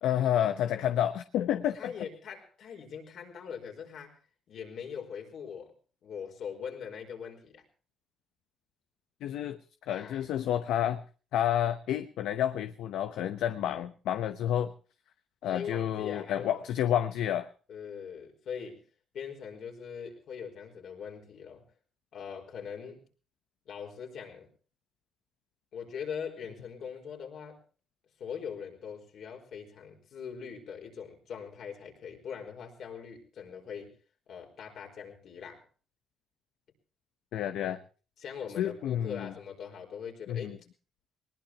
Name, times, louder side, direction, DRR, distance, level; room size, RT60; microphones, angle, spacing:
voice 1, 0.0-1.9 9.2-9.6 9.9-11.0 11.3-14.7 15.4-17.5 37.3-37.8 38.6-39.3 40.3-40.6, left 10 dB, 85° left, 10 dB, 0.8 m, -30 dB
voice 2, 1.7-4.2 4.5-5.7 6.0-7.6 9.9-10.3 15.4-16.5 17.7-18.8 19.1-21.6 22.1-23.0 23.6-24.5 25.7-27.6 28.2-33.9 34.3-35.6 37.6-37.8 38.2-40.5, left 7 dB, 70° left, 3 dB, 4.8 m, -41 dB
20.5 x 20.0 x 2.9 m, 0.37 s
cardioid pair, 90°, 0 cm